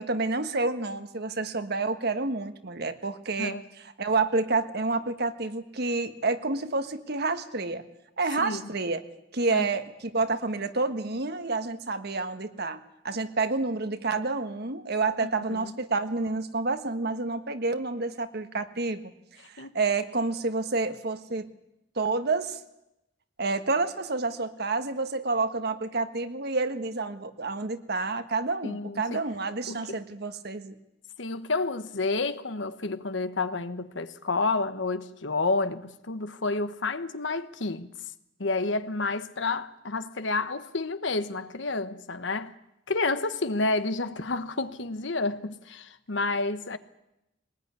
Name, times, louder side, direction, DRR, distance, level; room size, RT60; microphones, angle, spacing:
voice 1, 0.0-7.8 8.2-9.0 9.3-19.0 19.5-21.5 21.9-22.6 23.4-30.7, right 3 dB, 60° right, 1.4 m, -29 dB
voice 2, 15.2-15.7 19.6-19.7 28.6-29.2 29.7-29.9 31.2-37.9 38.4-42.5 42.9-46.8, left 3 dB, 75° left, 1.2 m, -30 dB
21.5 x 19.5 x 9.6 m
head